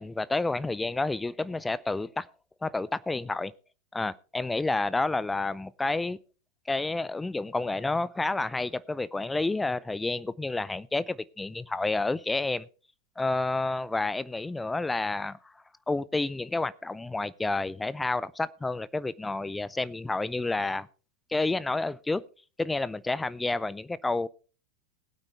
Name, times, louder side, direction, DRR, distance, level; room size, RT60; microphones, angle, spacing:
voice 1, 0.0-2.3 2.6-3.5 3.9-6.2 6.7-12.7 13.2-15.4 15.9-20.9 21.3-22.2 22.6-24.3, left 2 dB, 10° left, 0.5 m, -30 dB
20.5 x 8.9 x 3.3 m
figure-of-eight pair, 90°, 0 cm